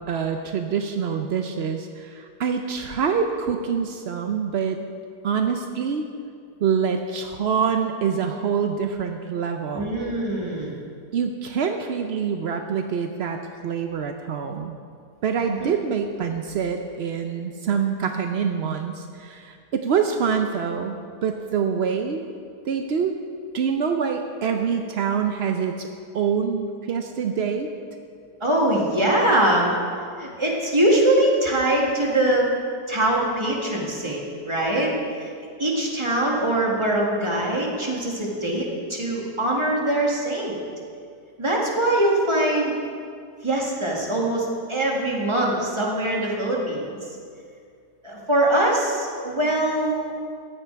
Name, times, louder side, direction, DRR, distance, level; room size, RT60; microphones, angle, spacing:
voice 1, 0.1-4.8 5.2-6.1 6.6-9.9 11.1-14.8 15.2-22.3 22.6-23.2 23.5-25.9 26.1-27.7, right 6 dB, 70° right, 5 dB, 0.6 m, -25 dB
voice 2, 9.7-10.8 15.4-15.8 28.4-29.7 30.2-32.5 32.9-34.2 34.5-34.9 35.2-35.3 35.6-40.6 41.4-42.7 43.4-47.0 48.0-50.1, right 1 dB, 15° right, -3 dB, 1.9 m, -22 dB
14.0 x 10.0 x 4.6 m, 2.3 s
omnidirectional pair, 1.8 m